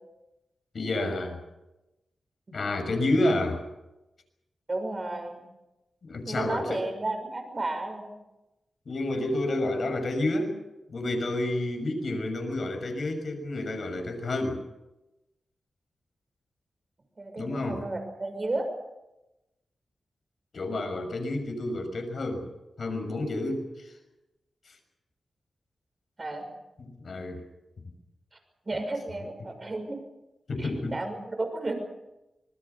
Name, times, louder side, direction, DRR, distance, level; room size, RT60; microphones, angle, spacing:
voice 1, 0.7-1.4 2.5-3.6 6.0-6.8 8.9-10.6 10.9-14.6 17.4-17.8 20.5-22.5 22.8-23.9 24.7-24.8 26.8-27.4 30.5-30.9, left 2 dB, 60° left, 6 dB, 6.4 m, -29 dB
voice 2, 4.7-5.4 6.3-8.1 17.2-18.7 26.2-26.5 28.7-30.0 30.6-31.7, right 2 dB, 35° right, 6 dB, 6.3 m, -33 dB
26.0 x 20.5 x 7.0 m, 0.97 s
wide cardioid pair, 85°, 0 cm